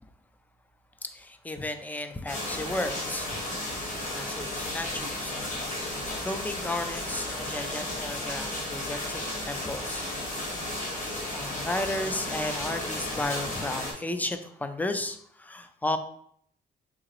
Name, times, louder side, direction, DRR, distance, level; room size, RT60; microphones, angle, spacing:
voice 1, 1.0-3.8 4.1-5.4 5.8-10.1 11.3-16.0, left 2 dB, 10° left, 8 dB, 0.4 m, -34 dB
sound 1, 2.3-13.9, left 1 dB, 40° left, 1.6 m, -34 dB
3.7 x 2.8 x 3.1 m, 0.66 s
cardioid pair, 90°, 20 cm